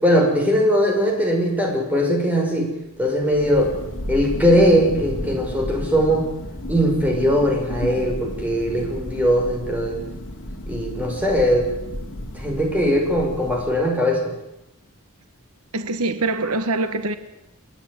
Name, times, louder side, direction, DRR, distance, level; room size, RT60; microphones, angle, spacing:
voice 1, 0.0-2.7 3.0-3.7 4.1-6.3 6.7-10.0 10.7-11.7 12.3-14.3, equal, 5° right, 5.7 m, -20 dB
Thunder, 3.1-14.1, left 1 dB, 60° left, 3.5 m, -33 dB
voice 2, 15.7-17.2, right 2 dB, 80° right, 1.4 m, -24 dB
29.0 x 10.0 x 9.9 m
head